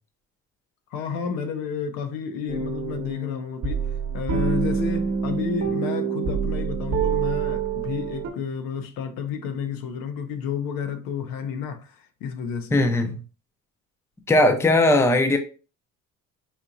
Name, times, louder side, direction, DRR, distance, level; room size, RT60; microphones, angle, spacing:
voice 1, 0.9-3.9 4.1-12.8, left 6 dB, 80° left, 0.7 m, -31 dB
sound 1, 2.5-8.3, right 6 dB, 50° right, 0.9 m, -26 dB
voice 2, 12.7-13.2 14.3-15.4, left 2 dB, 10° left, 0.4 m, -18 dB
4.3 x 2.8 x 2.5 m
cardioid pair, 125°, 34 cm